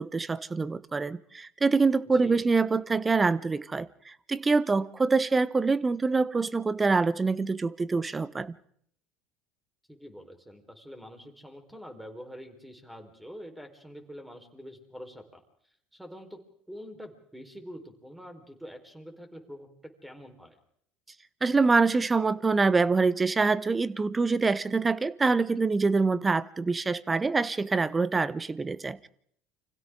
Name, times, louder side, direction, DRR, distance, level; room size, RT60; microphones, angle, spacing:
voice 1, 0.0-8.5 21.4-29.1, right 4 dB, 20° right, 1.0 m, -25 dB
voice 2, 2.1-2.4 9.9-15.4 15.9-16.4 16.7-19.7 20.0-20.6, equal, 5° right, 4.5 m, -45 dB
30.0 x 25.5 x 3.8 m
hypercardioid pair, 70°, 0 cm